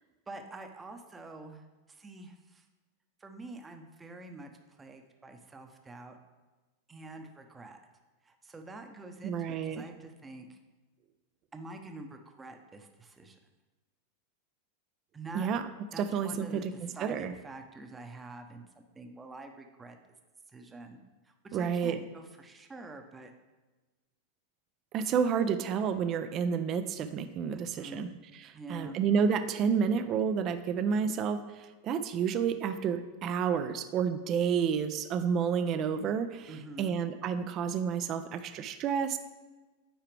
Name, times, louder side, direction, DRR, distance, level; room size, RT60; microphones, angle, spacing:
voice 1, 0.3-2.6 3.2-6.2 6.9-7.8 8.2-10.6 11.5-13.4 15.1-15.5 15.9-20.0 20.5-23.3 27.6-28.1 28.5-29.0 36.5-37.0, right 2 dB, 15° right, 5 dB, 0.8 m, -47 dB
voice 2, 9.2-9.8 15.3-15.7 16.0-16.7 17.0-17.3 21.5-22.0 24.9-28.1 28.7-31.4 31.8-36.5 36.8-39.2, right 7 dB, 40° right, 10 dB, 0.5 m, -30 dB
9.0 x 4.8 x 3.4 m, 1.2 s
hypercardioid pair, 100°, 0 cm